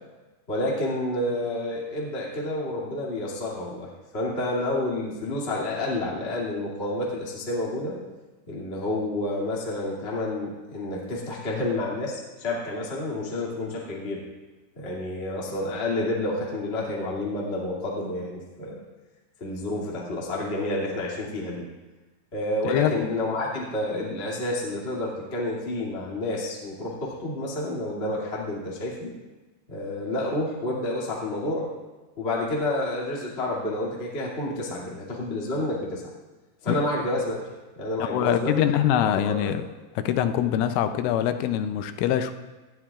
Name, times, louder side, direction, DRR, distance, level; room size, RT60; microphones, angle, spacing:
voice 1, 0.5-8.0 8.5-14.2 14.7-18.8 19.4-21.7 22.3-29.2 29.7-31.7 32.2-36.0 36.6-37.4 37.7-38.7 39.0-39.5, left 1 dB, 30° left, -5 dB, 1.2 m, -29 dB
voice 2, 22.6-23.1 36.7-36.8 38.0-39.6 40.0-42.3, left 11 dB, 85° left, 9 dB, 3.2 m, -24 dB
18.5 x 12.0 x 2.4 m, 1.2 s
omnidirectional pair, 5.6 m